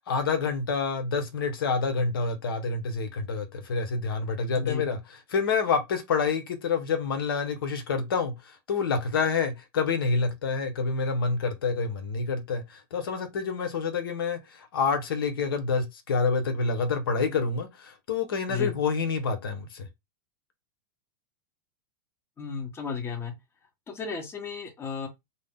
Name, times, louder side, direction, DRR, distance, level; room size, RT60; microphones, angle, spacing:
voice 1, 0.1-19.9, left 4 dB, 85° left, 0.8 m, -28 dB
voice 2, 22.4-23.3 23.9-25.1, left 6 dB, 20° left, 0.9 m, -33 dB
2.7 x 2.1 x 3.5 m
hypercardioid pair, 125°, 12 cm